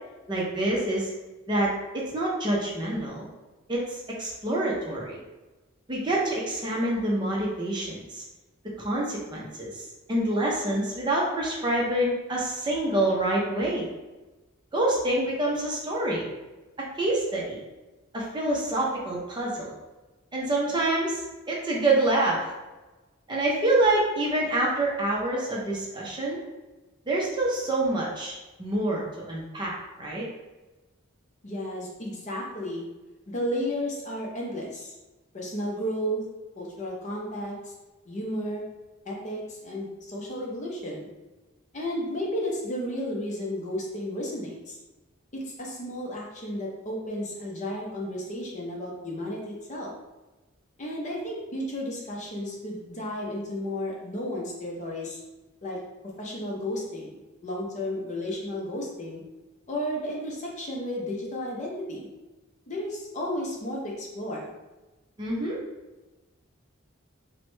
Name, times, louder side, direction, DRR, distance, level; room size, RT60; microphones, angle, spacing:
voice 1, 0.3-1.1 1.5-3.3 3.7-5.2 5.9-8.2 8.8-13.9 14.7-16.3 17.0-17.6 18.1-19.7 20.3-21.2 21.5-22.5 23.3-26.4 27.1-30.3 65.2-65.6, right 1 dB, 20° right, -4 dB, 0.5 m, -27 dB
voice 2, 31.4-32.8 33.3-34.9 35.3-36.2 36.6-37.7 38.1-38.6 39.1-41.1 41.7-44.8 45.3-49.9 50.8-55.2 55.6-55.8 56.2-57.1 57.4-59.2 59.7-62.1 62.7-64.5, equal, 35° left, -2 dB, 0.5 m, -33 dB
3.1 x 2.0 x 3.1 m, 1.1 s
head